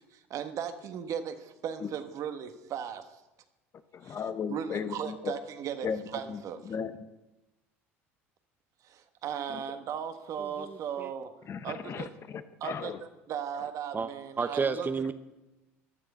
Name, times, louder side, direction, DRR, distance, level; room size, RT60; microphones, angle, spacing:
voice 1, 0.1-3.1 4.0-4.2 4.5-6.6 8.8-11.3 11.6-12.1 12.6-12.9 13.3-14.9, right 8 dB, 55° right, 8 dB, 1.5 m, -37 dB
voice 2, 3.9-5.3 5.8-6.0 6.3-7.1 9.5-9.6 11.5-13.0, left 6 dB, 40° left, 11 dB, 1.1 m, -36 dB
voice 3, 10.6-11.1 13.9-14.1 14.4-15.1, right 5 dB, 25° right, 11 dB, 0.9 m, -31 dB
15.0 x 11.5 x 5.6 m, 1.0 s
hypercardioid pair, 70°, 7 cm